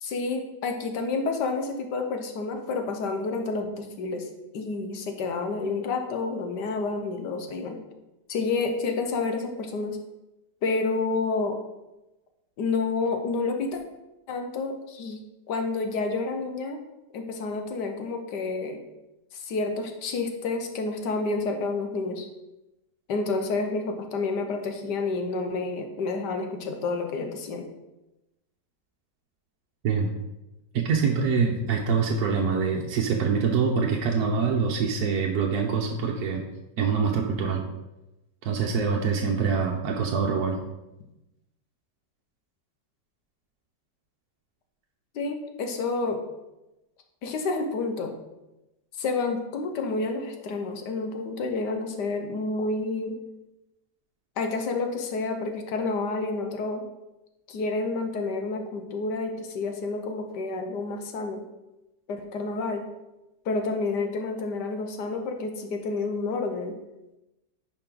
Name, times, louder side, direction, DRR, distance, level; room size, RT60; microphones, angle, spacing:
voice 1, 0.0-4.3 4.5-7.8 8.3-10.0 10.6-11.6 12.6-13.8 14.3-15.2 15.5-16.8 17.1-18.8 19.3-22.3 23.1-27.7 45.1-46.2 47.2-48.1 49.0-53.2 54.4-56.8 57.5-61.4 62.1-62.8 63.4-66.7, left 3 dB, 70° left, 5 dB, 1.6 m, -29 dB
voice 2, 30.7-36.4 36.8-37.6 38.4-40.6, right 5 dB, 65° right, 0 dB, 1.2 m, -25 dB
10.5 x 4.8 x 3.8 m, 0.98 s
omnidirectional pair, 1.9 m